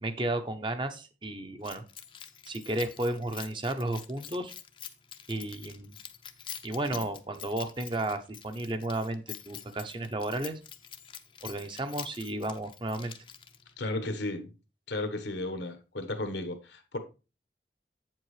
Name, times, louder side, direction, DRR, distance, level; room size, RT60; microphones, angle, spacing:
voice 1, 0.0-1.8 2.5-4.5 5.3-5.9 6.6-10.6 11.4-13.1, right 2 dB, 25° right, 0.7 m, -33 dB
Keys jangling, 1.6-13.8, left 9 dB, 30° left, 0.5 m, -46 dB
voice 2, 13.8-14.5 14.9-17.0, left 2 dB, 80° left, 1.2 m, -34 dB
8.3 x 7.5 x 3.2 m
head